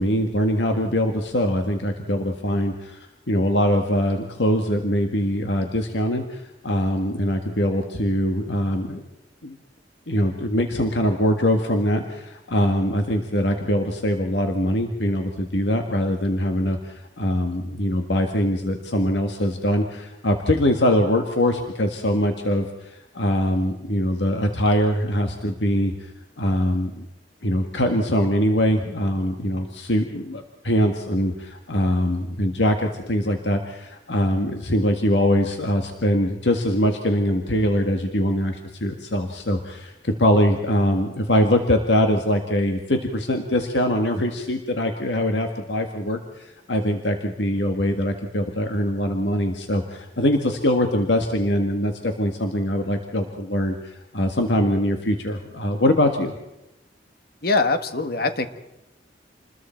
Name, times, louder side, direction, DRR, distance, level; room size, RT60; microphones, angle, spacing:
voice 1, 0.0-3.0 3.3-9.0 9.4-9.6 10.1-25.9 26.4-27.1 27.4-56.3, equal, 80° left, 4 dB, 1.8 m, -23 dB
voice 2, 57.4-58.5, left 3 dB, 60° left, 9 dB, 1.6 m, -22 dB
28.0 x 21.0 x 4.5 m, 0.91 s
head